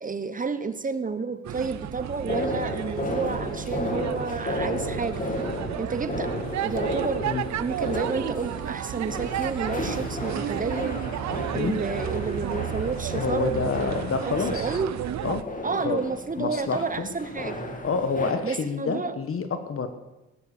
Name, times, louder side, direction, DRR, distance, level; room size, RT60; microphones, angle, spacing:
voice 1, 0.0-5.2 5.8-6.3 6.6-11.0 11.5-15.0 15.6-17.6 18.4-19.1, right 4 dB, 25° right, 11 dB, 1.1 m, -30 dB
sound 1, 1.4-15.4, right 12 dB, 65° right, 0.8 m, -33 dB
sound 2, 2.3-18.3, left 1 dB, 25° left, 2.9 m, -33 dB
voice 2, 13.1-14.8 15.2-15.4 15.8-16.0 16.4-17.1 17.8-19.9, left 5 dB, 45° left, 8 dB, 1.6 m, -28 dB
17.0 x 12.0 x 6.9 m, 1.0 s
cardioid pair, 90°, 30 cm